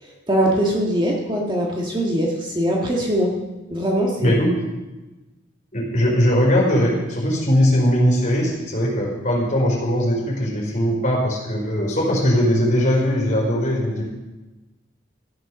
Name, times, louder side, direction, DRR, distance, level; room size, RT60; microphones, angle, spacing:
voice 1, 0.0-3.4 3.7-4.3, equal, 25° right, -2 dB, 1.7 m, -22 dB
voice 2, 4.2-4.6 5.7-14.0, equal, 40° left, -3 dB, 4.5 m, -20 dB
14.5 x 9.8 x 6.4 m, 1.1 s
head